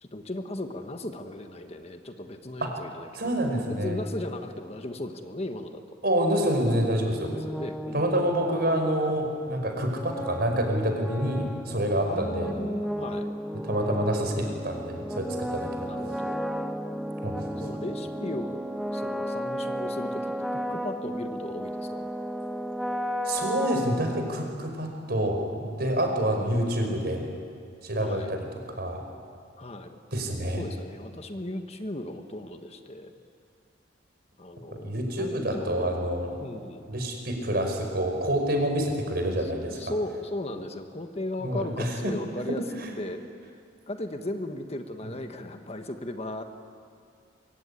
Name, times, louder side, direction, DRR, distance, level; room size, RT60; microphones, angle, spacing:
voice 1, 0.1-5.8 7.2-8.2 12.0-13.3 15.8-16.4 17.6-18.6 18.9-22.1 26.6-27.4 28.0-28.3 29.6-30.0 30.5-33.1 34.4-36.0 36.4-36.9 39.4-42.6 43.0-43.2 43.9-46.4, left 1 dB, 35° left, 6 dB, 1.5 m, -37 dB
voice 2, 3.1-4.0 6.0-7.3 7.9-12.5 13.6-16.0 17.2-17.5 23.3-27.2 27.8-29.0 30.1-30.6 34.7-36.3 36.9-39.8 41.4-42.2 42.5-42.9, right 1 dB, 55° right, 4 dB, 5.2 m, -27 dB
sound 1, 7.1-24.8, equal, ahead, 1.0 m, -34 dB
24.0 x 24.0 x 9.9 m, 2.3 s
head